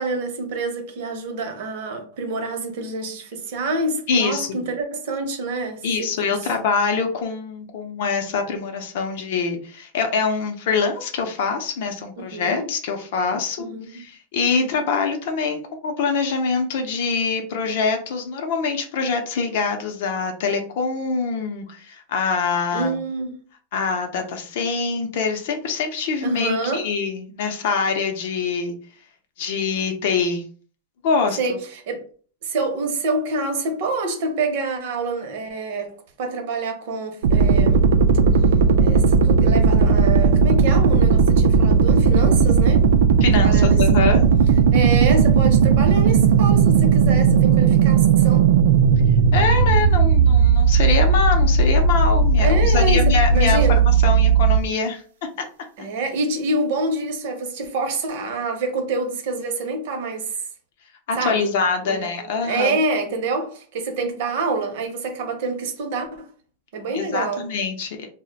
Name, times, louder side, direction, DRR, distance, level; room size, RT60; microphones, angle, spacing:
voice 1, 0.0-6.3 12.2-12.7 13.6-14.0 14.6-14.7 22.7-23.3 26.2-26.9 31.4-32.0 32.4-37.9 38.8-42.9 43.3-44.2 44.7-48.5 52.4-53.8 55.8-60.4 61.2-61.5 61.8-66.3 66.7-67.5, right 3 dB, 45° right, 0.6 m, -27 dB
voice 2, 4.1-4.6 5.8-23.0 23.7-28.7 29.4-30.4 31.0-31.6 43.2-44.2 49.3-53.6 53.9-55.0 61.1-62.8 66.9-68.1, left 5 dB, 50° left, 0.5 m, -24 dB
Monotron Helicoptor, 37.2-54.6, right 5 dB, 75° right, 0.3 m, -16 dB
2.4 x 2.1 x 3.9 m
supercardioid pair, 180°, 0 cm